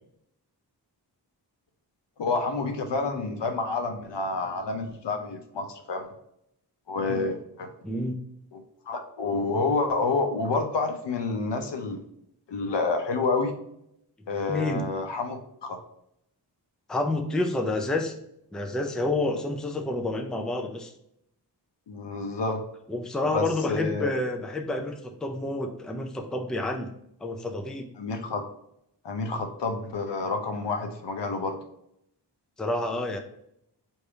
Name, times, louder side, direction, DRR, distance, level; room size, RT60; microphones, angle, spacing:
voice 1, 2.2-6.1 6.9-7.7 8.5-12.0 12.5-13.5 14.3-15.8 21.9-22.6 23.3-24.1 28.0-28.4 29.0-31.6, left 3 dB, 75° left, 5 dB, 0.7 m, -29 dB
voice 2, 7.8-8.2 14.4-14.8 16.9-18.2 18.5-20.9 22.9-26.9 27.2-27.9 32.6-33.2, left 2 dB, ahead, 4 dB, 0.4 m, -29 dB
3.3 x 2.7 x 4.5 m, 0.76 s
wide cardioid pair, 75°, 43 cm